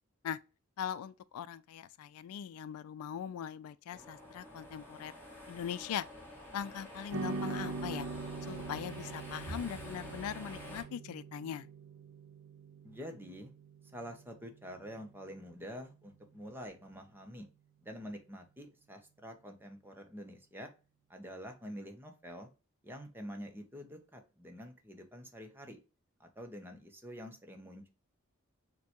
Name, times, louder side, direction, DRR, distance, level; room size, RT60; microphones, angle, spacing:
voice 1, 0.8-5.1 5.5-6.1 6.5-8.1 8.5-11.7, left 9 dB, 90° left, 0.3 m, -40 dB
sound 1, 3.9-10.8, left 1 dB, 10° left, 1.4 m, -49 dB
sound 2, 7.1-15.6, right 3 dB, 85° right, 0.5 m, -43 dB
voice 2, 12.8-13.5 13.9-17.5 17.8-20.7 21.1-22.5 22.8-25.8 26.2-27.9, equal, 10° right, 0.7 m, -47 dB
6.6 x 2.2 x 2.9 m
head